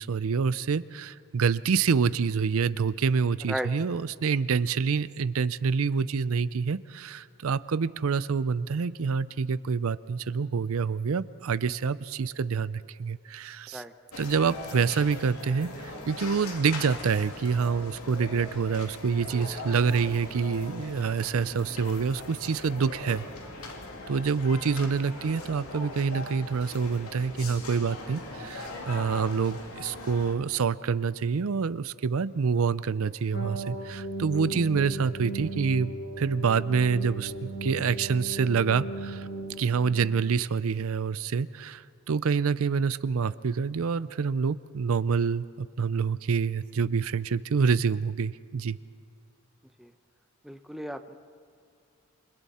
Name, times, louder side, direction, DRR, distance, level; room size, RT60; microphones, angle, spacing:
voice 1, 0.0-13.8 14.2-23.3 24.1-35.9 36.2-39.3 39.6-48.8, right 5 dB, 75° right, 16 dB, 0.5 m, -27 dB
sound 1, 14.1-30.3, left 2 dB, 80° left, 2.7 m, -40 dB
sound 2, 33.3-40.4, right 2 dB, 45° left, 1.8 m, -37 dB
voice 2, 50.4-51.2, equal, ahead, 8 dB, 0.7 m, -35 dB
28.5 x 26.0 x 4.3 m, 2.3 s
head